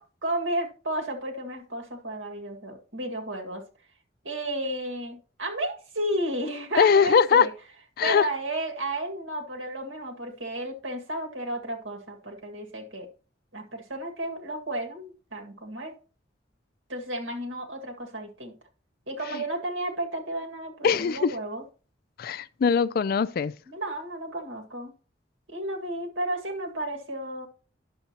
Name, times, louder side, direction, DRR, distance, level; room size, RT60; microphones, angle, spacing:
voice 1, 0.2-3.6 4.2-7.5 8.0-13.1 13.5-15.9 16.9-18.5 19.1-21.6 23.7-24.9 25.5-27.5, right 1 dB, 85° right, 1.9 m, -32 dB
voice 2, 6.8-7.5 8.0-8.3 19.3-19.4 20.8-21.3 22.2-23.5, left 6 dB, 50° left, 0.3 m, -21 dB
10.5 x 6.9 x 2.9 m
head